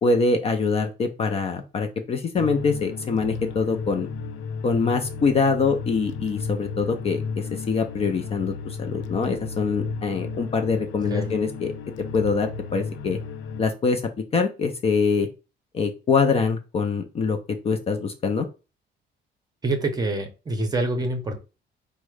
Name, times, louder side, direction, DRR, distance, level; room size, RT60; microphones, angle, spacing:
voice 1, 0.0-4.1 4.6-11.7 12.1-13.2 13.6-14.0 14.3-15.3 15.7-17.4 17.6-18.5, left 4 dB, 30° left, 5 dB, 0.5 m, -24 dB
sound 1, 2.3-13.6, left 5 dB, 80° left, 0.6 m, -33 dB
voice 2, 19.6-21.4, right 2 dB, 20° right, 5 dB, 0.7 m, -26 dB
4.6 x 2.1 x 4.7 m, 0.31 s
cardioid pair, 175°, 20 cm